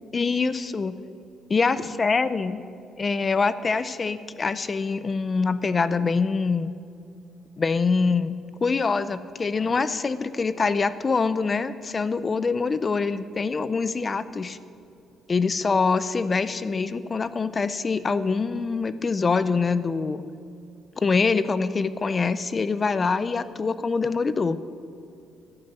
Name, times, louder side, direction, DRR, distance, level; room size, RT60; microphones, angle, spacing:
voice 1, 0.1-1.0 1.5-2.6 3.0-6.7 7.6-14.6 15.3-20.3 21.0-24.6, left 4 dB, 20° left, 14 dB, 0.4 m, -24 dB
11.5 x 8.9 x 6.6 m, 2.6 s
cardioid pair, 175°, 0 cm